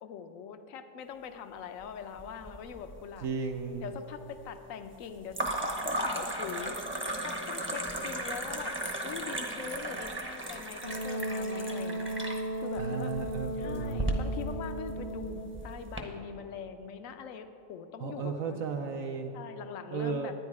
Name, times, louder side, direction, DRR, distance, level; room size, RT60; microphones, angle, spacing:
voice 1, 0.0-3.3 3.8-6.8 7.2-8.7 9.0-13.1 13.6-18.9 19.3-20.3, left 7 dB, 65° left, 9 dB, 1.0 m, -43 dB
sound 1, 2.2-2.9 3.2-3.9 5.3-16.0, right 1 dB, 10° right, 0.7 m, -36 dB
voice 2, 3.2-3.9 12.8-14.2 18.0-19.3 19.9-20.3, right 5 dB, 65° right, 4 dB, 0.9 m, -35 dB
Wind instrument woodwind instrument, 10.8-15.6, right 1 dB, 45° left, 0.8 m, -36 dB
11.0 x 9.8 x 4.7 m, 2.8 s
omnidirectional pair, 1.7 m